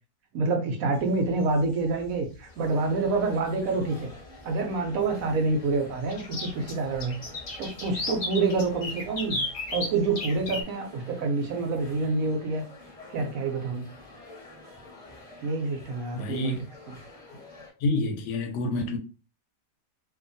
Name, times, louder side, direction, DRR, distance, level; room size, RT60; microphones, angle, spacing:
voice 1, 0.3-4.1 4.4-7.2 7.6-9.4 9.7-12.6 13.1-13.9 15.4-17.0, right 3 dB, 70° right, 0.8 m, -27 dB
sound 1, 1.3-1.6 3.2-3.3 3.7-3.8 6.1-10.6, left 2 dB, 55° left, 0.4 m, -33 dB
sound 2, 2.4-17.7, left 2 dB, 5° left, 0.8 m, -49 dB
voice 2, 16.1-16.6 17.3-17.4 17.8-19.0, left 2 dB, 80° left, 1.2 m, -28 dB
2.7 x 2.4 x 2.6 m
omnidirectional pair, 1.8 m